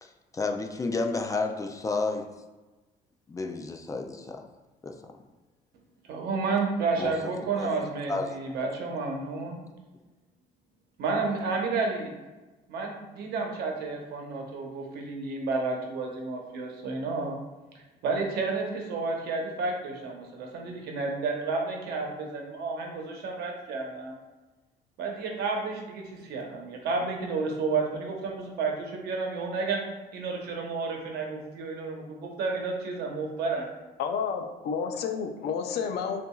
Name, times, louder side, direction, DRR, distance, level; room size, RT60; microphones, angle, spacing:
voice 1, 0.0-2.3 3.3-4.5 4.8-4.9 7.0-7.7 8.1-8.3, left 3 dB, 20° left, 4 dB, 0.3 m, -31 dB
voice 2, 6.1-9.6 11.0-12.1 12.7-17.4 17.7-24.2 25.0-29.8 30.1-33.7, right 4 dB, 75° right, 1 dB, 0.9 m, -31 dB
voice 3, 34.0-36.2, left 6 dB, 70° left, 5 dB, 0.5 m, -30 dB
6.7 x 2.5 x 2.3 m, 1.2 s
cardioid pair, 110°, 17 cm